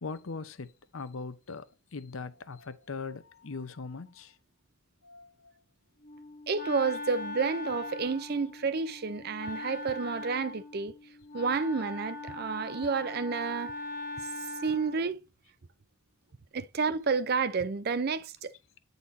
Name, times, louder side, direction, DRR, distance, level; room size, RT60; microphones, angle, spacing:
voice 1, 0.0-1.7 1.9-4.4 5.0-5.5 6.5-7.1, left 4 dB, 75° left, 0.7 m, -41 dB
Wind instrument woodwind instrument, 6.0-15.1, left 2 dB, 40° left, 1.5 m, -41 dB
voice 2, 6.5-10.9 11.3-13.7 14.6-15.2 16.5-18.5, right 5 dB, 45° right, 0.5 m, -30 dB
8.5 x 4.1 x 4.1 m
head